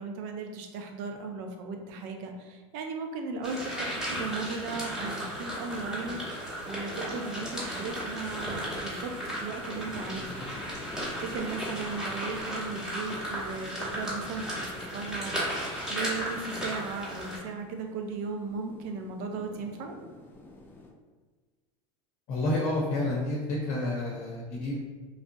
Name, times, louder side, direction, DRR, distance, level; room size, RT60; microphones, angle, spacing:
voice 1, 0.0-6.2 6.7-10.3 11.1-19.9, right 4 dB, 60° right, 4 dB, 0.5 m, -37 dB
sound 1, 3.4-17.4, equal, 5° right, 1.1 m, -35 dB
sound 2, 8.3-20.9, left 2 dB, 10° left, 0.4 m, -48 dB
voice 2, 22.3-24.8, left 1 dB, 55° left, -3 dB, 0.7 m, -29 dB
3.2 x 2.5 x 2.6 m, 1.4 s
supercardioid pair, 110°, 16 cm